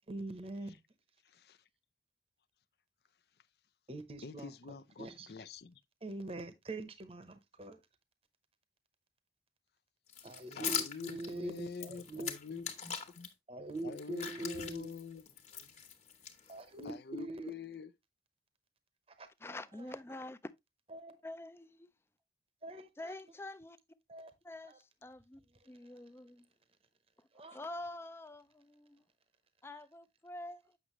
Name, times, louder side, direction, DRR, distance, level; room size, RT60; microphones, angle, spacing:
voice 1, 0.1-0.8 3.9-5.3 6.0-7.8 10.2-12.6 13.5-14.9 16.5-17.5 19.1-19.9 20.9-21.2 22.6-23.3 24.1-24.3 24.6-24.8 25.5-25.6 27.3-27.9 29.7-29.9, right 2 dB, 35° right, 0.8 m, -44 dB
voice 2, 1.2-1.6 4.2-5.8 10.5-13.3 13.8-15.2 15.5-15.7 16.8-17.9, left 5 dB, 65° left, 0.5 m, -47 dB
sound 1, 10.1-13.3 13.8-16.8, left 8 dB, 40° left, 1.3 m, -41 dB
voice 3, 19.4-20.5 21.2-21.9 23.0-23.8 24.4-26.5 27.2-29.0 29.6-30.8, left 2 dB, 15° left, 0.4 m, -47 dB
8.2 x 6.1 x 3.0 m
head